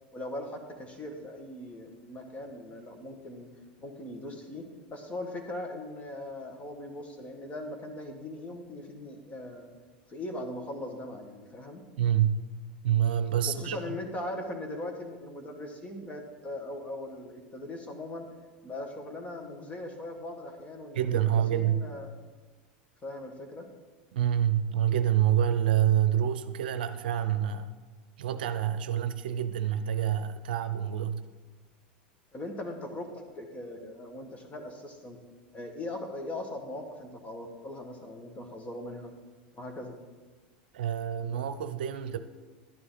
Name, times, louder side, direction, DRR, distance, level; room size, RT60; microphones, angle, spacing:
voice 1, 0.1-3.5 3.8-9.7 10.1-11.8 13.5-18.3 18.6-22.1 23.0-23.7 32.3-35.2 35.5-39.1 39.5-40.0, left 1 dB, 25° left, 4 dB, 1.9 m, -40 dB
voice 2, 12.0-12.4 12.8-14.0 20.9-21.9 24.1-27.7 28.2-31.2 40.7-42.2, right 10 dB, 75° right, 11 dB, 0.6 m, -27 dB
11.5 x 9.7 x 4.1 m, 1.3 s
hypercardioid pair, 95°, 5 cm